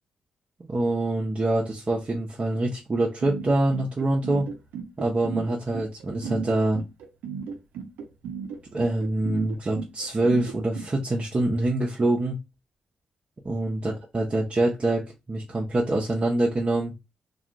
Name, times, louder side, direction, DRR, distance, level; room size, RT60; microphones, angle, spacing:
voice 1, 0.6-4.5 5.0-6.8 8.7-12.4 13.4-16.9, right 2 dB, 40° right, 0.7 m, -25 dB
sound 1, 3.2-10.9, right 7 dB, 80° right, 0.5 m, -34 dB
2.4 x 2.3 x 2.8 m
hypercardioid pair, 45°, 3 cm